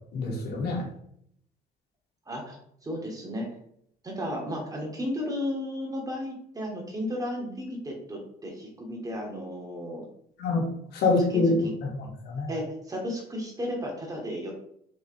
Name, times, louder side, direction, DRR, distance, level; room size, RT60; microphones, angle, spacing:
voice 1, 0.1-0.8 10.4-10.7 10.9-11.5 11.8-12.5, left 3 dB, 70° left, -2 dB, 2.7 m, -26 dB
voice 2, 2.3-2.6 2.8-3.5 4.0-10.1 11.3-11.4 12.5-14.5, equal, 20° right, 0 dB, 2.5 m, -34 dB
6.8 x 5.7 x 3.5 m, 0.69 s
cardioid pair, 110°, 17 cm